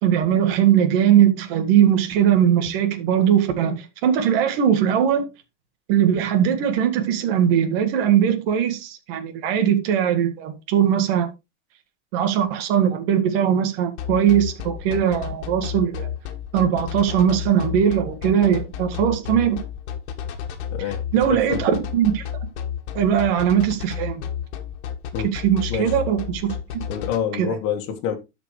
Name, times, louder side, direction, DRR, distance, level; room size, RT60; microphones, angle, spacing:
voice 1, 0.0-5.3 5.9-11.3 12.1-16.1 16.5-19.6 21.1-22.2 22.9-24.2 25.3-26.6 27.3-27.5, right 9 dB, 55° right, 1.9 m, -20 dB
sound 1, 14.0-27.2, left 8 dB, 60° left, 1.7 m, -31 dB
voice 2, 20.7-21.0 21.3-21.6 25.1-25.3 25.7-25.9 26.9-28.2, left 8 dB, 40° left, 1.7 m, -27 dB
13.0 x 5.2 x 3.2 m
supercardioid pair, 150°, 36 cm